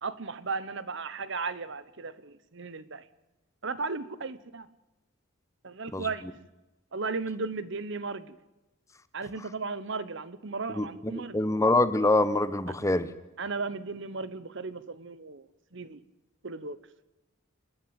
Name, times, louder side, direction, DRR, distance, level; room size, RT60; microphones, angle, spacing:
voice 1, 0.0-3.0 3.6-4.7 5.6-6.2 6.9-8.4 9.1-11.4 13.4-16.0 16.4-16.8, right 4 dB, 60° right, 16 dB, 1.1 m, -35 dB
voice 2, 11.1-13.1, left 2 dB, 15° left, 14 dB, 0.9 m, -25 dB
28.0 x 10.5 x 8.9 m, 1.0 s
head